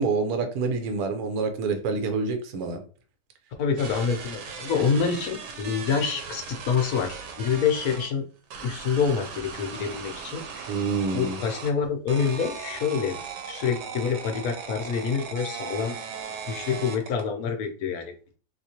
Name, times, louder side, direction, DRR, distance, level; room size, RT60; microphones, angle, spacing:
voice 1, 0.0-2.8 10.7-11.4, right 4 dB, 70° right, 6 dB, 1.1 m, -27 dB
voice 2, 3.6-8.2 8.6-10.7 11.1-13.2 13.4-16.0 16.5-18.4, left 6 dB, 70° left, 5 dB, 1.0 m, -27 dB
sound 1, 3.8-8.1 8.5-11.7 12.1-17.3, right 6 dB, 85° right, 1.3 m, -38 dB
3.6 x 2.9 x 2.8 m, 0.40 s
omnidirectional pair, 1.8 m